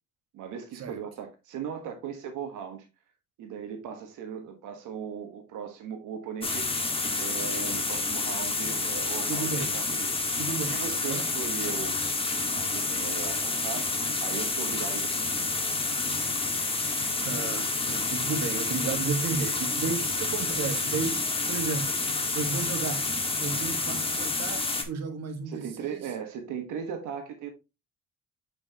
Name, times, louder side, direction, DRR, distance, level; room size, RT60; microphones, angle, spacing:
voice 1, 0.3-2.8 3.4-6.9 7.2-10.2 10.7-12.0 12.5-13.9 14.2-15.4 25.5-27.5, right 7 dB, 90° right, 1.5 m, -38 dB
sound 1, 6.4-24.8, left 3 dB, 20° left, 1.6 m, -29 dB
voice 2, 9.3-9.7 10.3-11.3 17.2-22.1 22.3-23.1 23.4-26.1, right 5 dB, 60° right, 1.7 m, -33 dB
7.9 x 5.6 x 2.9 m
cardioid pair, 90°, 30 cm